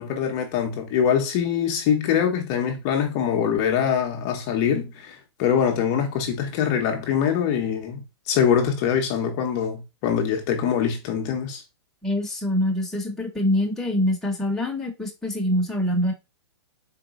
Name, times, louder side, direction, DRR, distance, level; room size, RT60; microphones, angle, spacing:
voice 1, 0.0-11.6, left 8 dB, 35° left, 0.7 m, -23 dB
voice 2, 12.0-16.1, left 1 dB, 5° left, 0.9 m, -24 dB
4.0 x 2.1 x 3.9 m
hypercardioid pair, 135°, 15 cm